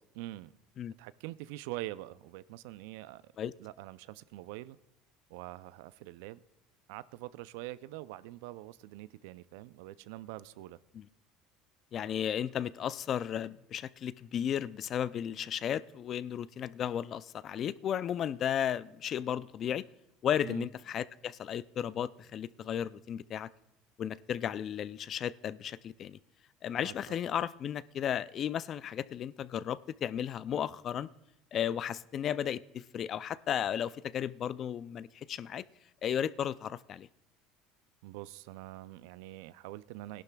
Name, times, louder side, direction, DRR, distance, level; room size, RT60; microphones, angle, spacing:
voice 1, 0.1-0.5 1.0-3.3 3.6-4.8 5.3-6.4 6.9-10.8 20.4-20.7 26.8-27.2 38.0-40.2, right 16 dB, 85° right, 0.4 m, -44 dB
voice 2, 11.9-19.8 20.2-23.5 24.0-26.2 26.6-31.1 31.5-35.6 36.0-37.1, left 9 dB, 40° left, 0.3 m, -34 dB
19.5 x 11.5 x 2.3 m
supercardioid pair, 125°, 0 cm